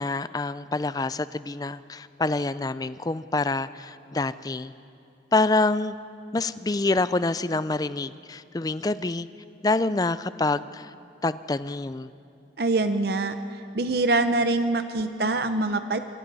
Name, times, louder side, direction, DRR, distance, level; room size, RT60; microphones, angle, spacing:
voice 1, 0.0-4.7 5.3-5.9 6.3-9.3 9.6-10.9 11.2-12.1, left 3 dB, 20° left, 15 dB, 0.4 m, -26 dB
voice 2, 12.6-13.3 13.7-16.0, right 2 dB, 60° right, 9 dB, 0.7 m, -24 dB
26.0 x 24.5 x 4.1 m, 2.6 s
head